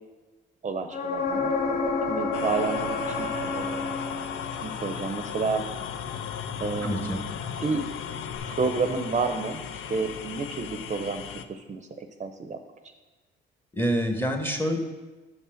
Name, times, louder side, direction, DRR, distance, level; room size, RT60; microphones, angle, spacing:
voice 1, 0.6-1.5 2.1-3.9 4.6-5.7 6.6-7.3 7.6-7.8 8.5-9.6 9.9-12.6, right 4 dB, 35° right, 7 dB, 0.6 m, -30 dB
sound 1, 0.9-4.7 8.4-8.5, left 3 dB, 55° left, 1.8 m, -29 dB
sound 2, 2.3-11.4, left 8 dB, 85° left, 0.5 m, -36 dB
voice 2, 6.8-7.2 13.7-14.8, equal, 10° left, 5 dB, 1.1 m, -26 dB
6.8 x 5.5 x 6.4 m, 1.2 s
cardioid pair, 90°, 20 cm